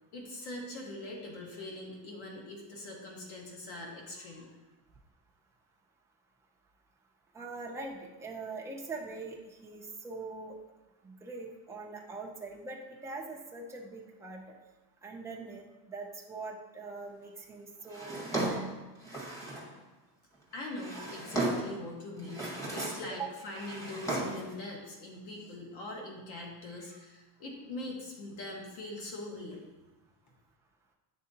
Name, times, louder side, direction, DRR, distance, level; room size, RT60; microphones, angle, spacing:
voice 1, 0.1-4.5 20.5-29.6, left 1 dB, 70° left, -1 dB, 1.4 m, -42 dB
voice 2, 7.3-10.6 11.0-14.4 15.0-18.8 23.1-23.3, right 3 dB, 10° right, -2 dB, 0.3 m, -42 dB
Drawer open or close, 17.9-19.7 20.5-21.8 22.2-23.1 23.4-24.5, right 2 dB, 10° left, 0.8 m, -35 dB
9.5 x 3.6 x 2.7 m, 1.1 s
cardioid pair, 175°, 40 cm